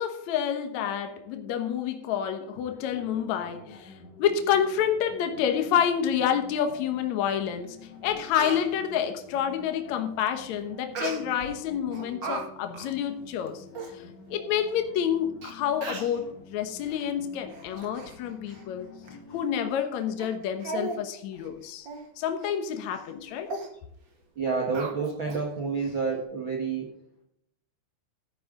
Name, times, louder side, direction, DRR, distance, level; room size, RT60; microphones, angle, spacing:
voice 1, 0.0-3.9 4.2-7.8 8.0-13.6 13.9-14.0 14.3-18.9 19.3-21.9 22.2-23.5, left 8 dB, 80° left, 6 dB, 1.6 m, -28 dB
sound 1, 2.7-19.5, left 4 dB, 45° left, 3.2 m, -49 dB
Speech, 7.6-7.7 8.1-8.6 11.0-11.5 11.9-12.4 12.7-12.9 13.5-13.6 13.7-13.9 14.7-14.8 15.4-15.5 15.8-16.2 16.9-17.1 17.5-18.2 18.5-18.6 19.1-19.2 19.7-19.9 20.2-20.3 20.6-21.0 21.3-21.5 21.9-22.1 22.4-22.5 22.9-23.1 23.5-23.7 24.7-25.4 25.8-25.9, right 3 dB, 45° right, 1.5 m, -36 dB
voice 2, 24.4-26.9, right 4 dB, 75° right, 1 dB, 1.1 m, -29 dB
13.0 x 9.8 x 3.9 m, 0.72 s
omnidirectional pair, 5.0 m